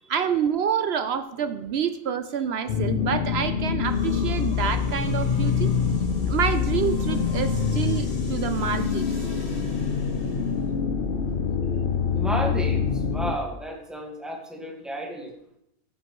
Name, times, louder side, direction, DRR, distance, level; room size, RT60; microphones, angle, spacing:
voice 1, 0.1-5.7 6.3-9.1, right 7 dB, 65° right, 10 dB, 0.6 m, -27 dB
sound 1, 2.7-13.3, left 6 dB, 50° left, 0.7 m, -25 dB
sound 2, 3.8-10.8, left 1 dB, 85° left, 2.6 m, -41 dB
voice 2, 12.1-15.3, right 1 dB, ahead, 0 dB, 1.4 m, -32 dB
14.0 x 7.5 x 3.1 m, 0.76 s
omnidirectional pair, 1.5 m